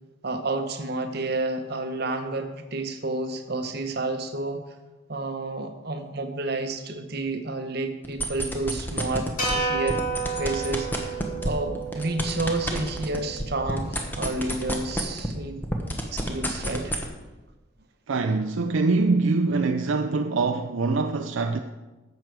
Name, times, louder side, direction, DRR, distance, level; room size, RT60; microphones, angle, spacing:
voice 1, 0.2-4.6 5.1-10.0 10.3-15.6 16.1-16.9, right 2 dB, 50° right, 1.0 m, -30 dB
sound 1, 8.0-9.5 9.9-15.4 15.6-17.0, equal, 10° left, 1.0 m, -28 dB
sound 2, 9.4-13.7, right 3 dB, 35° left, 2.6 m, -31 dB
voice 2, 18.1-21.6, right 3 dB, 70° right, 0.5 m, -24 dB
11.5 x 7.6 x 4.7 m
head